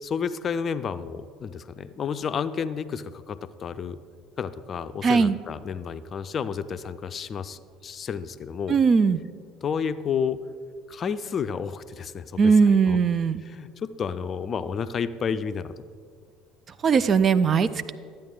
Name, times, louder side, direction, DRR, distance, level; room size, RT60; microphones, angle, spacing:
voice 1, 0.0-4.0 4.4-8.8 9.6-10.4 10.9-12.5 12.8-13.0 13.4-15.8, left 6 dB, 40° left, 13 dB, 0.4 m, -31 dB
voice 2, 5.0-5.4 8.7-9.2 12.4-13.4 16.8-17.9, right 5 dB, 40° right, 14 dB, 0.4 m, -19 dB
12.5 x 8.8 x 3.8 m, 2.1 s
hypercardioid pair, 65°, 0 cm